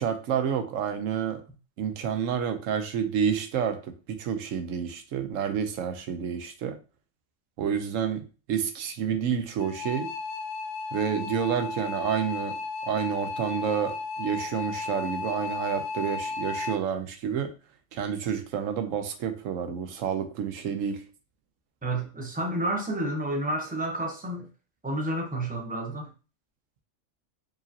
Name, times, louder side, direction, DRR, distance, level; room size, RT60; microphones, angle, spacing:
voice 1, 0.0-1.4 1.8-6.8 7.6-10.1 10.9-12.6 12.9-17.5 17.9-21.0, right 8 dB, 90° right, 1.0 m, -29 dB
sound 1, 9.6-16.8, left 4 dB, 75° left, 0.9 m, -34 dB
voice 2, 21.8-24.4 24.8-26.1, right 1 dB, 10° right, 0.8 m, -30 dB
4.8 x 3.0 x 2.7 m
omnidirectional pair, 1.3 m